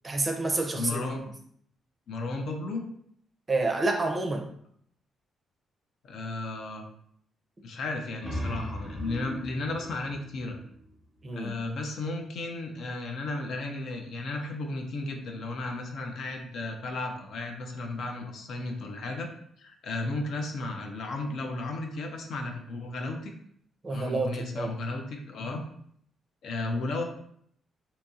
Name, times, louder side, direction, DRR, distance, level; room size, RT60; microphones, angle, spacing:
voice 1, 0.0-1.0 3.5-4.4 11.2-11.5 23.8-24.7, right 2 dB, 25° right, 3 dB, 0.5 m, -28 dB
voice 2, 0.7-1.2 2.1-2.8 6.0-6.8 7.6-10.6 11.3-19.3 19.6-23.3 23.9-25.6 26.4-27.0, left 2 dB, 70° left, 3 dB, 0.5 m, -34 dB
sound 1, 7.9-11.4, equal, 15° left, 1.0 m, -38 dB
2.8 x 2.7 x 2.3 m, 0.66 s
cardioid pair, 105°, 0 cm